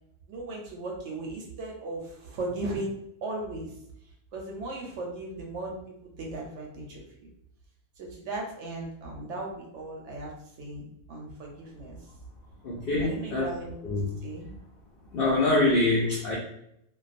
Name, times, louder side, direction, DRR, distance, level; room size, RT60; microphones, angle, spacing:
voice 1, 0.3-2.9 3.2-3.7 4.3-5.8 6.2-7.0 8.0-10.3 10.6-12.0 13.0-14.5, right 2 dB, 65° right, -1 dB, 0.8 m, -37 dB
voice 2, 12.6-13.5 13.8-14.0 15.1-16.4, left 2 dB, 70° left, -5 dB, 0.5 m, -24 dB
2.3 x 2.2 x 2.4 m, 0.77 s
omnidirectional pair, 1.5 m